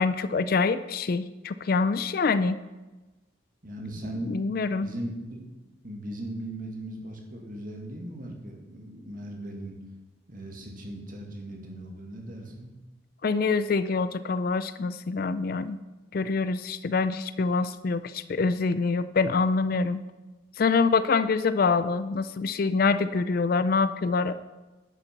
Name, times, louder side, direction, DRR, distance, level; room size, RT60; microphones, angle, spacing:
voice 1, 0.0-2.6 4.3-4.9 13.2-15.8 16.1-20.0 20.6-24.4, left 4 dB, 45° left, 13 dB, 0.4 m, -25 dB
voice 2, 3.6-4.3 4.8-5.5 5.8-9.8 10.3-12.7, right 1 dB, 40° right, 1 dB, 1.9 m, -38 dB
11.5 x 6.8 x 5.8 m, 1.1 s
head